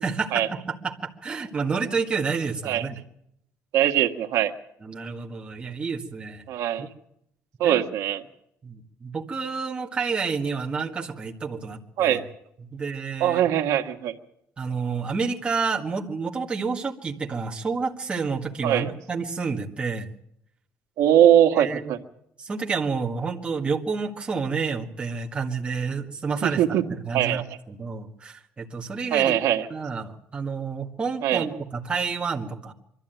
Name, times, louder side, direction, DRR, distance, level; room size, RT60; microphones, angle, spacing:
voice 1, 0.0-2.9 4.8-6.4 6.8-6.9 7.6-7.8 8.6-12.2 12.7-13.5 14.6-20.1 21.5-21.9 22.4-26.6 26.9-29.4 29.7-32.7, right 5 dB, 20° right, 0 dB, 1.8 m, -29 dB
voice 2, 3.7-4.5 6.5-6.8 7.6-8.2 12.0-12.2 13.2-14.1 18.6-18.9 21.0-22.0 26.4-26.8 27.1-27.4 29.1-29.7 31.2-31.5, right 11 dB, 70° right, 6 dB, 1.6 m, -21 dB
23.5 x 13.0 x 9.1 m, 0.79 s
cardioid pair, 155°, 6 cm